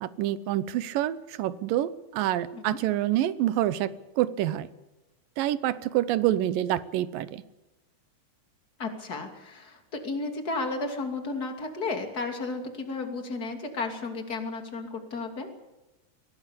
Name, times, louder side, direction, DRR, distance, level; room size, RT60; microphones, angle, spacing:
voice 1, 0.0-3.9 4.2-4.7 5.4-7.4, right 13 dB, 90° right, 16 dB, 2.6 m, -27 dB
voice 2, 8.8-15.5, left 3 dB, 30° left, 5 dB, 2.9 m, -33 dB
22.5 x 17.5 x 8.3 m, 1.0 s
omnidirectional pair, 3.8 m